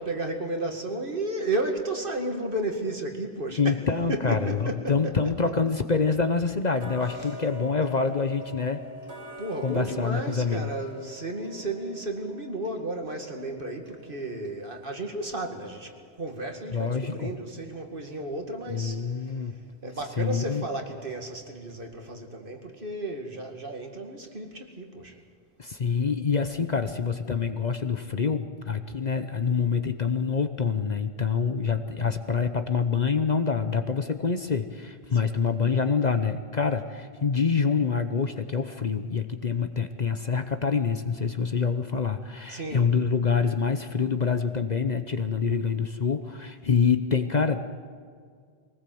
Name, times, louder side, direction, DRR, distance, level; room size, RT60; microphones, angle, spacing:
voice 1, 0.0-3.8 4.1-5.6 7.0-7.5 9.4-19.4 19.8-25.2 35.1-35.4 42.5-43.0, right 2 dB, 50° right, 3 dB, 2.4 m, -33 dB
voice 2, 3.6-8.9 9.6-10.7 16.7-17.3 18.7-19.5 20.2-20.6 25.6-47.6, left 5 dB, 45° left, 9 dB, 0.9 m, -26 dB
Tick-tock, 6.8-17.6 18.0-18.1 18.7-18.8 19.3-19.4 19.9-20.0 20.5-20.6 21.1-21.2 21.7-21.8, equal, 90° right, 4.5 m, -45 dB
23.0 x 19.0 x 7.8 m, 2.1 s
omnidirectional pair, 1.1 m